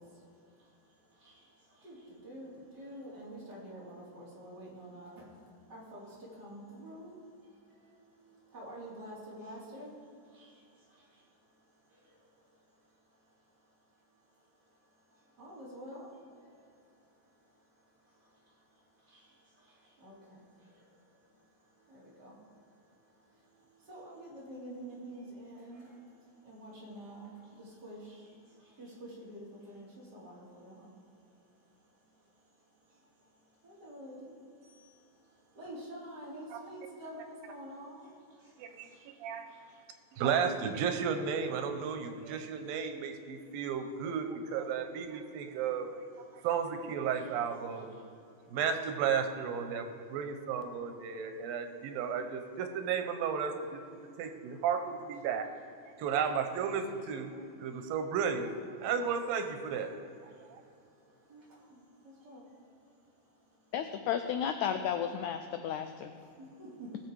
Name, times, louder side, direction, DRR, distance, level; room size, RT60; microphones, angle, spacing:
voice 1, 0.0-13.6 14.6-40.2 45.5-45.6 46.3-46.5 48.0-48.6 50.0-50.2 51.1-51.6 54.0-54.2 55.9-56.0 57.8-57.9 60.3-63.5 65.8-67.0, right 1 dB, 30° right, -5 dB, 3.3 m, -51 dB
voice 2, 38.6-39.5 40.1-45.9 46.2-47.9 48.4-53.8 54.2-55.5 56.0-59.9 60.2-60.6, right 7 dB, 90° right, 7 dB, 2.7 m, -34 dB
voice 3, 63.7-66.1, left 8 dB, 85° left, 7 dB, 1.6 m, -33 dB
19.5 x 7.4 x 4.8 m, 2.5 s
omnidirectional pair, 4.0 m